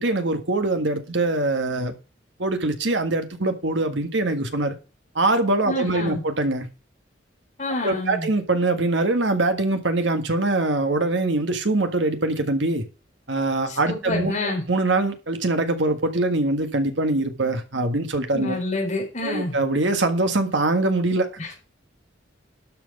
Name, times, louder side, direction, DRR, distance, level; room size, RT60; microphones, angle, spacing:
voice 1, 0.0-1.9 2.4-4.7 5.2-6.7 7.8-12.8 13.3-14.3 14.7-18.6 19.2-21.3, right 2 dB, 70° right, 1.6 m, -23 dB
voice 2, 5.7-6.2 7.6-8.3 13.7-14.6 18.3-19.5 21.4-21.5, left 2 dB, 40° left, 4.2 m, -28 dB
12.0 x 6.0 x 5.4 m
head